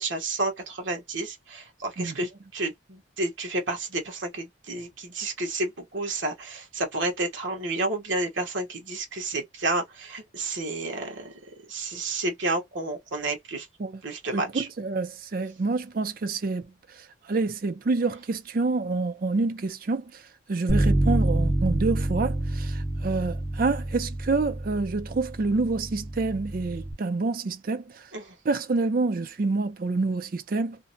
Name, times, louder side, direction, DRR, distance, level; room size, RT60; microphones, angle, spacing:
voice 1, 0.0-11.3 11.7-13.7 14.0-14.7 28.1-28.3, right 2 dB, 75° right, 1.0 m, -30 dB
voice 2, 14.3-20.2 20.5-28.1 28.4-30.8, right 3 dB, 45° right, 0.4 m, -27 dB
Bass guitar, 20.7-26.9, right 1 dB, 10° right, 0.8 m, -27 dB
2.6 x 2.1 x 2.6 m
head